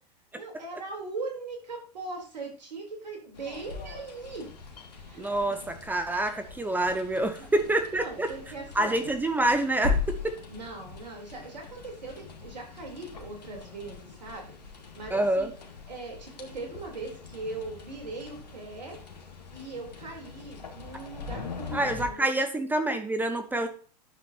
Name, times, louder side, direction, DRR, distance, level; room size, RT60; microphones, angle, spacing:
voice 1, 0.3-4.5 4.7-5.2 7.3-7.5 8.0-9.0 10.5-14.5 14.9-15.5 15.9-19.0 19.5-22.3, right 3 dB, 80° right, 1 dB, 3.8 m, -40 dB
sound 1, 3.3-22.1, left 4 dB, 80° left, 2.0 m, -40 dB
voice 2, 5.2-8.3 8.7-10.0 10.2-10.4 15.1-15.5 21.7-23.7, right 1 dB, 10° right, 7 dB, 0.9 m, -27 dB
11.0 x 7.2 x 2.9 m, 0.40 s
hypercardioid pair, 100°, 21 cm